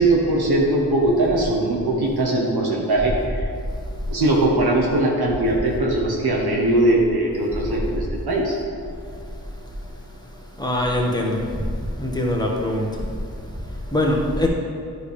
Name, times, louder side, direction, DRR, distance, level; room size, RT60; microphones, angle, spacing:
voice 1, 0.0-3.4 4.1-8.6, right 2 dB, 70° right, -3 dB, 1.3 m, -20 dB
voice 2, 10.6-11.5 12.0-12.9 13.9-14.5, left 1 dB, 10° left, -1 dB, 1.5 m, -22 dB
9.6 x 5.0 x 3.4 m, 2.3 s
cardioid pair, 45°, 39 cm